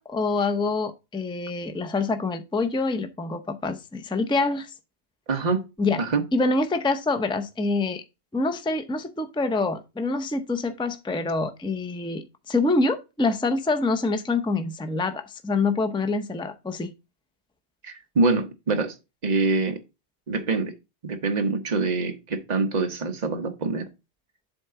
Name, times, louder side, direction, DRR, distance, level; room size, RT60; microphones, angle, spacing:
voice 1, 0.0-4.7 5.8-6.0 6.3-8.0 8.3-16.9, left 3 dB, 5° left, 0.5 m, -26 dB
voice 2, 5.3-5.7 6.0-6.2 17.8-18.9 19.2-19.8 20.3-20.7 21.0-23.9, right 3 dB, 40° right, 1.2 m, -25 dB
7.7 x 3.8 x 5.6 m
omnidirectional pair, 1.2 m